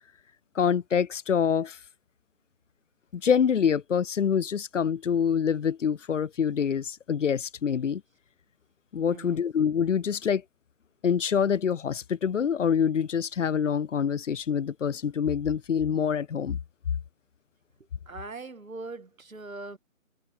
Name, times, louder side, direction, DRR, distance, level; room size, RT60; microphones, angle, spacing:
voice 1, 0.6-1.8 3.1-8.0 8.9-10.4 11.0-16.6, left 7 dB, 65° left, 0.6 m, -26 dB
voice 2, 9.1-9.4 18.1-19.8, right 3 dB, 80° right, 2.2 m, -41 dB
figure-of-eight pair, 160°, 41 cm